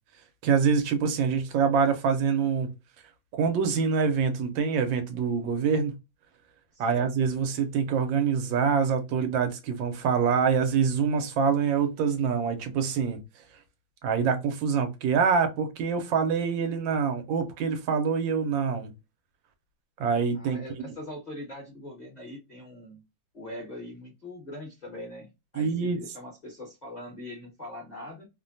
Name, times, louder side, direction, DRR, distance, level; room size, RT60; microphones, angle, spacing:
voice 1, 0.4-2.7 3.3-6.0 6.8-13.2 14.0-18.9 20.0-20.6 25.5-26.0, right 6 dB, 85° right, 1.4 m, -25 dB
voice 2, 6.7-7.1 20.3-23.0 23.3-28.3, left 1 dB, 30° left, 0.8 m, -42 dB
3.2 x 2.1 x 2.5 m
omnidirectional pair, 2.1 m